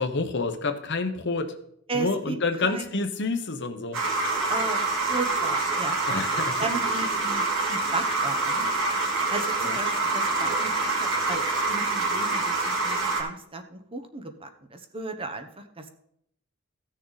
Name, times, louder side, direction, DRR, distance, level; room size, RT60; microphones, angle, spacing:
voice 1, 0.0-1.5 1.9-4.0 6.1-6.7 9.6-9.8, left 3 dB, 60° left, 8 dB, 1.1 m, -28 dB
voice 2, 1.9-2.4 2.6-2.9 4.5-4.8 5.1-6.0 6.6-8.7 9.3-11.4 11.7-15.9, right 3 dB, 25° right, 7 dB, 1.0 m, -34 dB
sound 1, 3.9-13.2, right 3 dB, 65° right, 2.6 m, -26 dB
15.0 x 6.5 x 4.0 m, 0.70 s
head